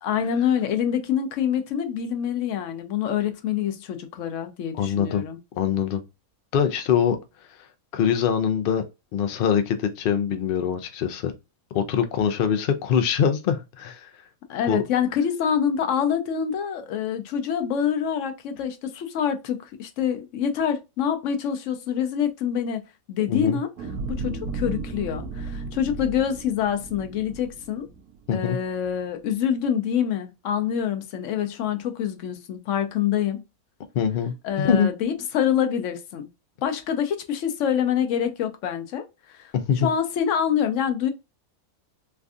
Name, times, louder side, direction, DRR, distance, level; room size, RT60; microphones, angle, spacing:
voice 1, 0.0-5.4 14.5-22.8 23.1-23.7 24.2-27.9 28.3-33.4 34.4-36.3 36.6-41.1, left 8 dB, 65° left, 0.8 m, -26 dB
voice 2, 4.7-5.2 5.5-6.0 6.5-7.2 7.9-8.8 9.1-11.3 11.7-14.1 14.7-14.8 23.3-23.6 28.3-28.6 33.9-34.3 34.6-34.9 39.5-39.9, left 8 dB, 85° left, 0.5 m, -23 dB
sound 1, 23.8-28.3 28.8-28.9, right 4 dB, 75° right, 1.0 m, -34 dB
3.3 x 2.5 x 2.3 m
omnidirectional pair, 1.6 m